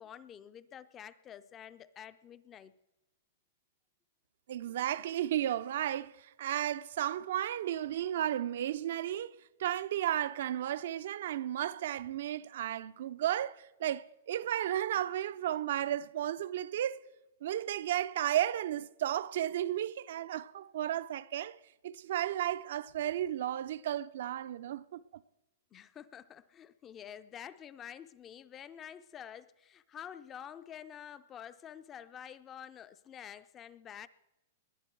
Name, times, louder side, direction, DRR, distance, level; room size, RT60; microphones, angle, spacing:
voice 1, 0.0-2.8 25.7-34.1, left 9 dB, 20° left, 0.4 m, -48 dB
voice 2, 4.5-9.3 9.6-17.0 17.4-21.6 21.8-25.0, right 12 dB, 60° right, 0.4 m, -33 dB
21.0 x 11.5 x 4.6 m
hypercardioid pair, 165°, 0 cm